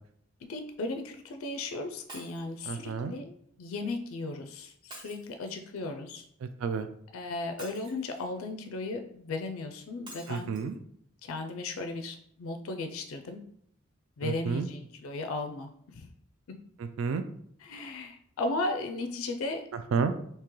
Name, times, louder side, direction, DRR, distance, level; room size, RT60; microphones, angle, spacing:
voice 1, 0.4-6.3 7.1-10.5 11.2-13.4 14.2-16.1 17.6-19.6, left 2 dB, 85° left, 6 dB, 0.4 m, -36 dB
Shatter, 2.1-2.5 4.9-5.8 7.6-8.4 10.1-10.6 11.3-11.4 11.6-11.7, right 1 dB, 25° right, 0.7 m, -48 dB
voice 2, 2.7-3.1 6.4-6.9 10.3-10.8 14.2-14.7 16.8-17.2 19.7-20.1, right 5 dB, 70° right, 9 dB, 0.3 m, -31 dB
3.7 x 2.8 x 3.0 m, 0.68 s
head